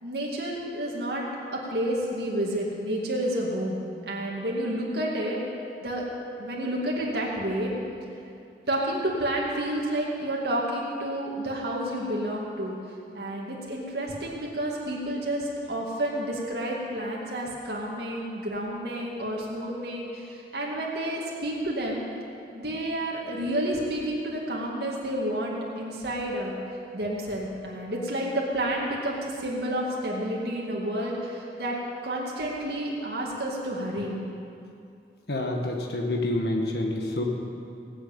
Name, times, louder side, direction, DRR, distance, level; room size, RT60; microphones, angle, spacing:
voice 1, 0.0-5.5 5.8-6.0 6.4-7.7 8.7-12.8 13.1-22.0 22.5-26.5 26.9-31.8 32.0-34.2, right 1 dB, 65° right, -3 dB, 2.3 m, -30 dB
voice 2, 35.3-37.2, left 1 dB, 65° left, 0 dB, 1.7 m, -28 dB
18.5 x 8.1 x 8.8 m, 2.6 s
head